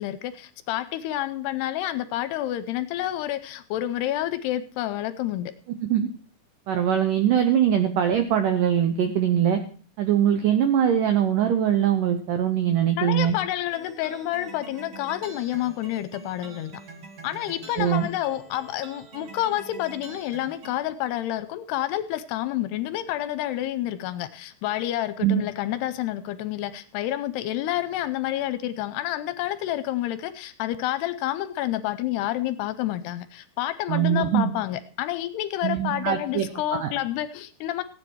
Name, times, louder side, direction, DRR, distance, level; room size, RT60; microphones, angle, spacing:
voice 1, 0.0-5.5 13.0-16.7 17.2-37.8, left 13 dB, 80° left, 13 dB, 2.6 m, -29 dB
voice 2, 6.7-9.6 10.0-13.4 17.8-18.1 25.2-25.4 33.9-34.5 35.6-36.9, right 9 dB, 85° right, 8 dB, 1.9 m, -22 dB
sound 1, 13.7-20.9, right 4 dB, 60° right, 1.3 m, -45 dB
15.5 x 9.7 x 4.6 m, 0.41 s
omnidirectional pair, 5.1 m